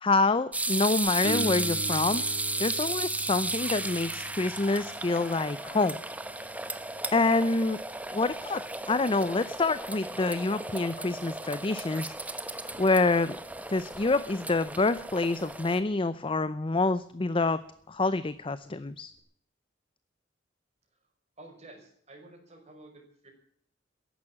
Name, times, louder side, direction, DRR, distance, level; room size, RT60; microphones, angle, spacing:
voice 1, 0.0-2.2 2.6-6.0 7.1-7.8 8.1-8.6 8.9-12.1 12.8-13.4 13.7-17.6 17.9-19.1, left 3 dB, 30° left, 14 dB, 0.6 m, -27 dB
sound 1, 0.5-15.8, right 2 dB, 10° right, 1.0 m, -34 dB
Piano, 1.2-11.6 19.2-19.3, left 1 dB, 65° left, 3.2 m, -43 dB
voice 2, 21.4-23.3, right 2 dB, 35° right, 3 dB, 5.6 m, -51 dB
15.0 x 11.5 x 8.7 m, 0.64 s
head